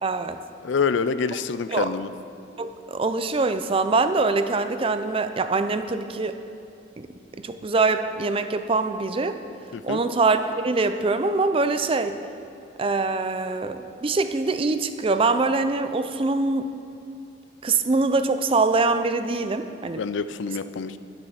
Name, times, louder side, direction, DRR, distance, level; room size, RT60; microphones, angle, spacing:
voice 1, 0.0-0.4 1.7-1.9 2.6-6.4 7.0-7.1 7.4-9.4 9.8-12.2 12.8-16.7 17.6-20.0, right 3 dB, 25° right, 10 dB, 0.4 m, -23 dB
voice 2, 0.6-2.1 9.7-10.0 20.0-21.0, left 5 dB, 65° left, 13 dB, 0.4 m, -26 dB
11.5 x 7.7 x 5.7 m, 2.6 s
head